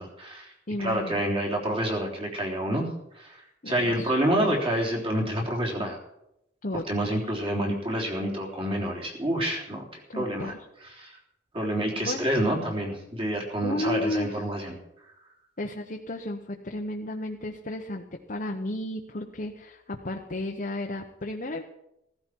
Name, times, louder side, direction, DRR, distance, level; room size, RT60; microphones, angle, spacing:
voice 1, 0.0-0.5 0.8-2.9 3.1-3.4 3.6-6.0 6.9-9.8 10.1-10.5 10.9-11.1 11.5-14.7, right 1 dB, 30° right, -1 dB, 3.6 m, -28 dB
voice 2, 0.7-1.3 3.6-4.2 6.6-7.2 10.1-10.6 12.0-12.3 13.6-14.4 15.6-21.6, left 1 dB, 45° left, 2 dB, 1.1 m, -33 dB
15.5 x 15.0 x 4.7 m, 0.83 s
head